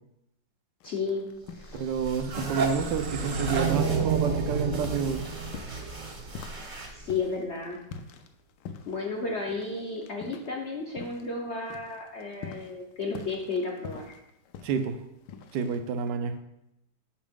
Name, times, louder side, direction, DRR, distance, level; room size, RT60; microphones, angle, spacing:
sound 1, 0.8-2.1 2.4-11.4 11.6-16.1, left 6 dB, 75° left, 1.1 m, -46 dB
voice 1, 0.8-1.3 6.9-7.8 8.9-14.0, left 3 dB, 55° left, 0 dB, 0.8 m, -33 dB
sound 2, 1.4-7.3, right 1 dB, 30° right, 0.6 m, -43 dB
voice 2, 1.7-5.2 14.6-15.0 15.5-16.3, right 6 dB, 80° right, 8 dB, 1.3 m, -29 dB
sound 3, 2.2-7.1, right 5 dB, 60° right, 0.9 m, -30 dB
7.4 x 5.2 x 3.6 m, 0.82 s
omnidirectional pair, 2.0 m